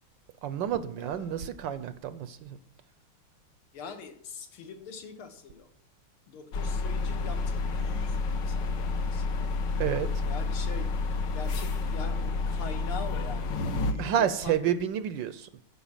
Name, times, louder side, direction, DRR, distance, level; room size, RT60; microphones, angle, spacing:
voice 1, 0.4-2.6 9.8-10.1 14.0-15.5, right 9 dB, 75° right, 13 dB, 1.1 m, -29 dB
voice 2, 1.0-1.4 3.7-5.7 6.3-9.2 10.2-10.9 11.3-14.6, left 5 dB, 85° left, 6 dB, 2.2 m, -43 dB
sound 1, 6.5-13.9, left 3 dB, 65° left, 1.5 m, -30 dB
10.0 x 5.7 x 7.2 m, 0.63 s
omnidirectional pair, 2.3 m